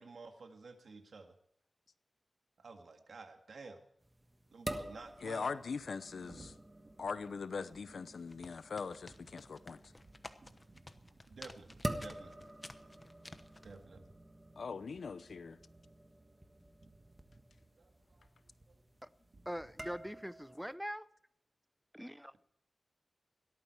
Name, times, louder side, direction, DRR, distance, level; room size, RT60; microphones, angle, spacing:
voice 1, 0.0-1.4 2.6-3.8 4.5-5.5 11.3-12.5 13.6-14.1 17.8-18.3 18.7-18.8, right 4 dB, 80° right, 1.9 m, -52 dB
sound 1, 4.0-20.8, right 1 dB, 20° right, 1.4 m, -48 dB
voice 2, 5.2-6.5 7.0-9.8 14.6-15.6, left 5 dB, 80° left, 0.8 m, -41 dB
sound 2, 6.3-20.1, right 2 dB, 50° right, 3.1 m, -63 dB
sound 3, 8.2-13.8, left 2 dB, 25° left, 1.1 m, -53 dB
voice 3, 19.5-21.1 21.9-22.3, equal, ahead, 0.5 m, -42 dB
17.5 x 13.0 x 4.5 m
wide cardioid pair, 90°, 0 cm